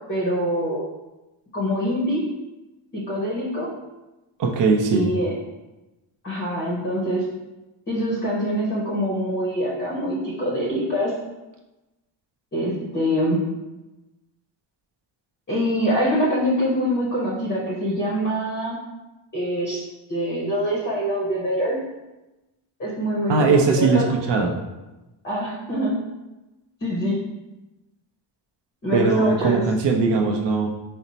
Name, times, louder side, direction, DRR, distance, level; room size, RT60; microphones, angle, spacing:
voice 1, 0.1-0.8 1.5-2.2 2.9-3.7 4.9-5.3 6.2-7.2 7.9-11.1 12.5-13.4 15.5-18.8 19.3-19.8 20.1-21.8 22.8-24.1 25.2-25.9 26.8-27.2 28.8-29.6, equal, 25° left, -5 dB, 0.6 m, -24 dB
voice 2, 4.4-5.1 23.3-24.5 28.9-30.7, right 4 dB, 60° right, 1 dB, 0.6 m, -20 dB
4.2 x 2.1 x 4.0 m, 1.0 s
wide cardioid pair, 165°, 49 cm